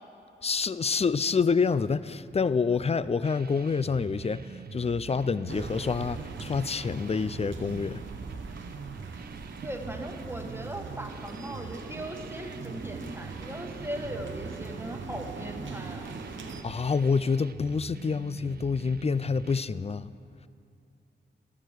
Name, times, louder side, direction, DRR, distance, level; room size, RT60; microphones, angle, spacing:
voice 1, 0.4-8.0 16.6-20.1, left 5 dB, 35° left, 0.3 m, -27 dB
sound 1, 3.2-19.6, right 7 dB, 55° right, 0.4 m, -45 dB
sound 2, 5.5-16.6, right 3 dB, 80° right, 0.8 m, -41 dB
voice 2, 9.6-16.2, right 1 dB, 10° right, 1.2 m, -39 dB
11.5 x 11.0 x 4.7 m
cardioid pair, 45°, 19 cm